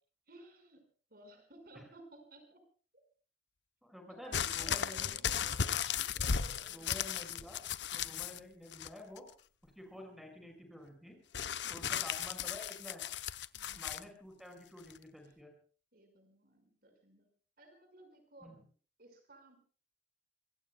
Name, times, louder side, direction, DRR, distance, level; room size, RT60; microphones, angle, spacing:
voice 1, 0.3-0.8 1.1-2.6 4.1-6.9 11.6-12.0 13.5-13.8 15.2-15.4 15.9-17.3 17.6-18.6 19.0-19.6, right 1 dB, 55° right, 6 dB, 5.2 m, -57 dB
voice 2, 3.8-5.2 6.7-7.6 7.9-9.3 9.6-11.2 11.7-13.1 13.8-15.5 18.4-18.6, left 1 dB, ahead, 3 dB, 5.6 m, -50 dB
sound 1, 4.3-8.4 8.7-9.3 11.3-14.0 14.9-15.0, left 8 dB, 75° left, 0.8 m, -36 dB
26.0 x 22.5 x 2.3 m, 0.40 s
head